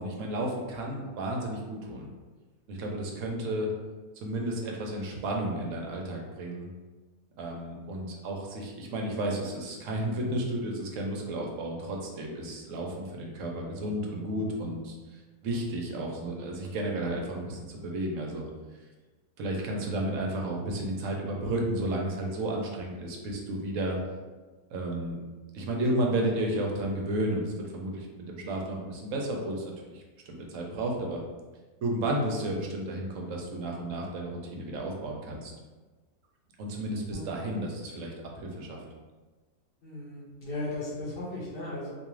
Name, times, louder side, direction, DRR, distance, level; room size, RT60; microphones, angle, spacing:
voice 1, 0.0-2.1 2.7-3.7 4.2-6.7 7.4-18.5 19.4-24.0 24.7-25.2 25.5-31.2 31.8-35.5 36.6-38.8, right 1 dB, 70° right, 0 dB, 0.8 m, -32 dB
voice 2, 39.8-41.9, left 2 dB, 45° left, -7 dB, 0.9 m, -36 dB
2.5 x 2.3 x 3.0 m, 1.3 s
omnidirectional pair, 1.6 m